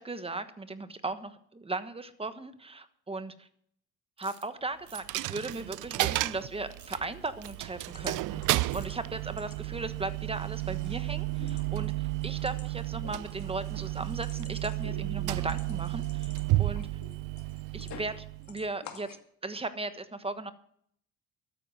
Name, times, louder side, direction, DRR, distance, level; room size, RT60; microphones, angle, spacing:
voice 1, 0.0-3.5 4.2-8.4 8.7-16.9 17.7-19.1 19.4-20.5, right 3 dB, 20° right, 11 dB, 1.3 m, -37 dB
sound 1, 4.2-4.4 4.8-5.0 5.5-5.8 6.1-6.3 6.6-6.9 7.4-7.6 8.1-8.2 8.5-8.9, right 8 dB, 70° right, 2.5 m, -53 dB
Coin (dropping), 4.9-18.7, right 19 dB, 90° right, 0.5 m, -33 dB
sound 2, 6.7-6.9 7.3-7.4 7.9-9.0 9.3-10.0 10.4-11.0 11.2-18.2 18.4-19.2, left 7 dB, 65° left, 2.1 m, -51 dB
13.0 x 9.2 x 8.0 m, 0.68 s
cardioid pair, 90°, 30 cm